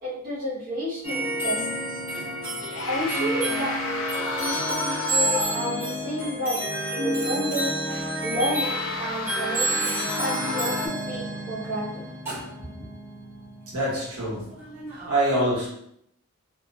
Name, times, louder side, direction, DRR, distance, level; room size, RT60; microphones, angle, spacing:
voice 1, 0.0-1.6 2.9-3.8 4.4-6.6 7.0-7.8 8.2-9.9 10.2-12.0, equal, 40° right, -10 dB, 0.7 m, -30 dB
sound 1, 1.0-15.1, right 1 dB, 10° right, 1.0 m, -30 dB
sound 2, 2.1-2.2 2.6-5.8 6.2-6.3 7.9-10.9, left 3 dB, 60° left, 0.4 m, -32 dB
voice 2, 13.7-14.4 15.1-15.7, right 1 dB, 75° right, -6 dB, 1.1 m, -25 dB
2.7 x 2.1 x 2.5 m, 0.73 s
head